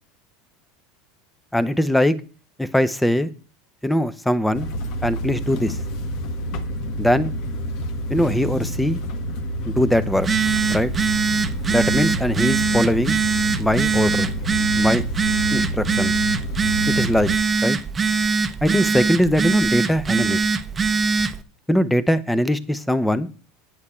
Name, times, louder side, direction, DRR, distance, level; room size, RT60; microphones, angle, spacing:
voice 1, 1.5-2.2 2.6-3.3 3.8-4.7 5.0-5.8 7.0-7.3 8.1-9.0 9.7-10.3 10.7-10.9 11.7-13.2 13.6-14.3 14.8-15.0 15.5-16.1 16.9-17.3 17.6-17.8 18.6-20.5 21.7-23.3, equal, 5° left, 15 dB, 0.8 m, -21 dB
sound 1, 4.5-17.4, equal, 60° left, 1.3 m, -29 dB
Telephone, 10.1-21.4, right 4 dB, 25° right, 0.8 m, -22 dB
8.6 x 7.9 x 4.4 m, 0.37 s
hypercardioid pair, 90°, 0 cm